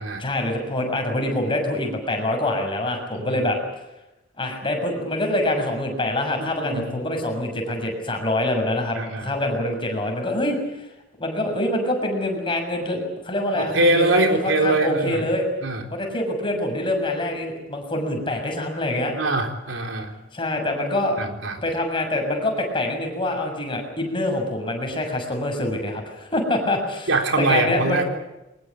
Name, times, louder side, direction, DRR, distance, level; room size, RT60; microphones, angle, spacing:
voice 1, 0.2-3.6 4.4-10.9 11.2-15.5 15.9-19.1 20.3-21.2 21.6-27.1 27.4-28.0, left 1 dB, 25° left, 3 dB, 6.8 m, -25 dB
voice 2, 6.5-6.9 9.0-9.3 13.6-15.2 15.6-15.8 19.2-20.1 21.2-21.6 27.1-28.0, right 2 dB, 75° right, 4 dB, 3.9 m, -23 dB
23.5 x 20.5 x 8.5 m, 0.95 s
head